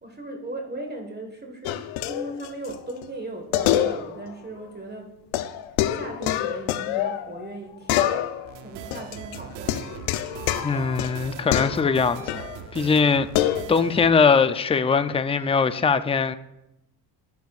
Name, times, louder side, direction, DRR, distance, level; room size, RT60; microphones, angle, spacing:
voice 1, 0.0-5.1 5.9-8.1 8.6-10.1, right 2 dB, 20° right, 1.6 m, -37 dB
sound 1, 1.7-2.8 3.0-3.1 3.5-4.3 4.6-4.7 5.3-7.6 7.9-8.6 8.9-12.6 13.3-13.6, left 12 dB, 85° left, 0.7 m, -26 dB
sound 2, 8.5-14.1, right 10 dB, 90° right, 0.8 m, -40 dB
voice 2, 10.6-12.4 12.7-16.4, left 5 dB, 15° left, 0.5 m, -21 dB
20.5 x 6.9 x 2.5 m
supercardioid pair, 80°, 47 cm